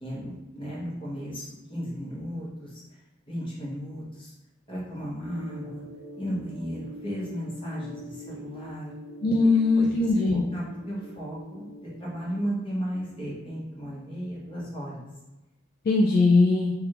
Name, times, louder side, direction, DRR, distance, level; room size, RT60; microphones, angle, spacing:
voice 1, 0.0-2.8 3.3-4.3 4.7-5.8 6.2-8.9 9.7-9.9 10.3-15.1, equal, 25° left, -7 dB, 1.0 m, -35 dB
sound 1, 5.2-12.5, left 1 dB, 35° right, 0.4 m, -44 dB
voice 2, 9.2-10.4 15.9-16.7, left 3 dB, 50° left, -2 dB, 0.3 m, -20 dB
3.4 x 2.3 x 2.9 m, 1.0 s
head